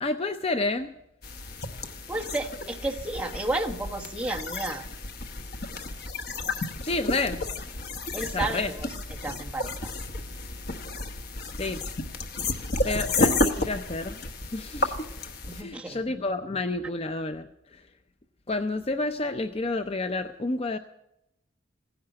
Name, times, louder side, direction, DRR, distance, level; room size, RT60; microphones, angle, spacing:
voice 1, 0.0-0.9 6.8-7.5 8.2-8.7 11.5-11.8 12.8-14.2 14.5-15.1 15.5-17.8 18.5-20.8, left 2 dB, 30° left, 9 dB, 0.5 m, -30 dB
sound 1, 1.2-15.6, left 2 dB, 50° left, 1.0 m, -32 dB
voice 2, 2.1-4.8 8.1-8.8 9.2-9.9 15.5-16.0, right 2 dB, 5° right, -1 dB, 1.3 m, -32 dB
16.0 x 10.5 x 7.7 m, 0.83 s
head